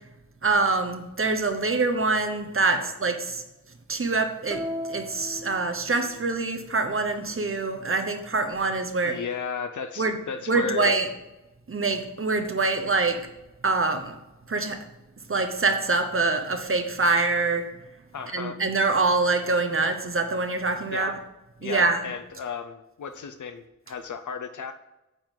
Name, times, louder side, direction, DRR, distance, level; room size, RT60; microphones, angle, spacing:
voice 1, 0.4-3.4 3.9-4.6 4.9-9.2 10.0-10.2 10.5-11.1 11.7-13.2 13.6-14.1 14.5-14.8 15.3-17.7 18.3-21.2 21.6-22.0, right 3 dB, 45° right, 7 dB, 0.9 m, -25 dB
sound 1, 4.5-6.3, left 1 dB, ahead, 0.7 m, -36 dB
voice 2, 9.0-10.9 18.1-18.6 20.9-21.2 21.6-24.7, left 6 dB, 90° left, 8 dB, 0.6 m, -34 dB
9.2 x 3.9 x 7.2 m, 0.98 s
wide cardioid pair, 100°, 29 cm